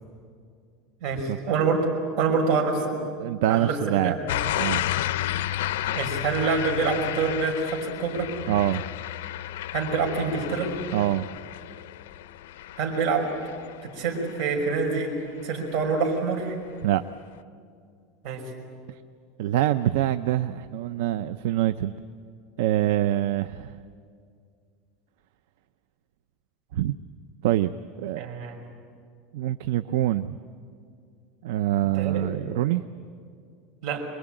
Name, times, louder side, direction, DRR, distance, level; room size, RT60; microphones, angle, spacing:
voice 1, 1.0-1.9 2.2-2.9 3.5-4.2 5.9-8.3 9.7-10.7 12.8-13.3 13.8-15.1 15.4-16.6 18.2-18.5 28.2-28.7 31.9-32.4 33.8-34.0, right 4 dB, 50° right, 1 dB, 5.7 m, -26 dB
voice 2, 3.2-4.1 4.6-4.8 8.5-8.8 10.9-11.3 16.8-17.0 19.4-21.9 22.6-23.7 26.7-26.9 27.4-27.7 28.0-28.2 29.3-30.4 31.4-32.8, right 13 dB, 70° right, 12 dB, 0.6 m, -25 dB
sound 1, 4.3-15.1 15.5-15.9, left 13 dB, 90° left, 0.6 m, -32 dB
25.5 x 22.5 x 9.0 m, 2.3 s
supercardioid pair, 160°, 0 cm